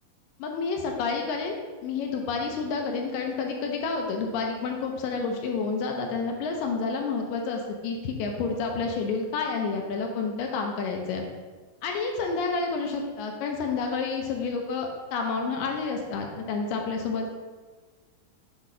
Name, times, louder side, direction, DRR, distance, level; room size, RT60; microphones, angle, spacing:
voice 1, 0.4-11.3 11.8-17.3, left 4 dB, 80° left, 2 dB, 2.1 m, -29 dB
7.9 x 2.8 x 5.0 m, 1.4 s
omnidirectional pair, 4.3 m